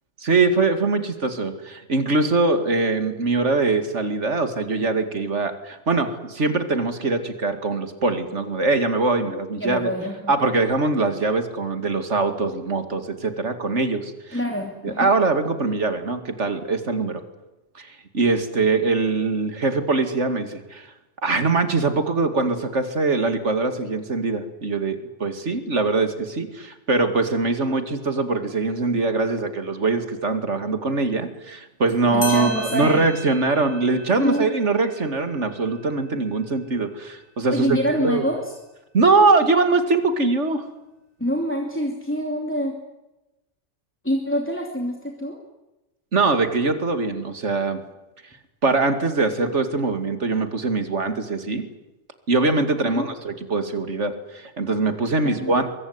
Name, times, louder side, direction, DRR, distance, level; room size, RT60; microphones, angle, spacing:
voice 1, 0.2-9.9 10.3-14.4 14.8-17.2 17.7-20.9 21.2-38.3 38.9-40.7 46.1-47.8 48.6-51.7 52.3-55.7, right 3 dB, 80° right, 8 dB, 2.7 m, -22 dB
voice 2, 9.6-10.3 14.3-15.1 32.1-33.0 34.2-34.5 37.5-38.5 41.2-42.8 44.0-45.4 53.0-53.1 55.2-55.6, equal, 10° left, 2 dB, 2.8 m, -26 dB
sound 1, 31.9-32.0 32.2-37.3, left 1 dB, 75° left, 6.4 m, -38 dB
23.5 x 23.0 x 9.7 m, 0.98 s
omnidirectional pair, 1.2 m